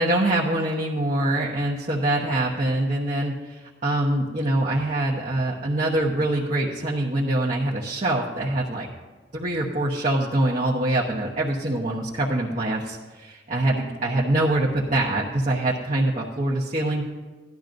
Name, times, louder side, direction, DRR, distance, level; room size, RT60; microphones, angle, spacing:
voice 1, 0.0-8.9 9.3-17.0, right 1 dB, 40° right, -4 dB, 1.0 m, -24 dB
16.5 x 12.0 x 2.6 m, 1.3 s
head